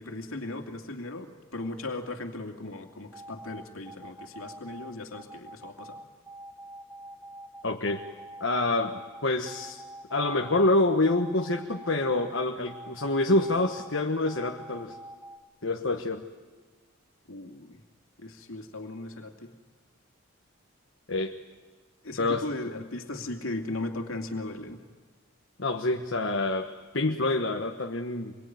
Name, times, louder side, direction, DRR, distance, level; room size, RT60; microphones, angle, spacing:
voice 1, 0.0-6.0 17.3-17.8 18.2-19.5 22.0-24.8, left 2 dB, 80° left, 4 dB, 2.6 m, -37 dB
sound 1, 3.1-15.4, right 1 dB, 15° right, 2.5 m, -45 dB
voice 2, 7.6-8.0 8.4-9.8 10.1-14.9 15.6-16.2 21.1-21.3 22.2-22.5 25.6-28.4, left 2 dB, 60° left, 2 dB, 1.4 m, -27 dB
26.5 x 23.0 x 9.5 m, 1.4 s
head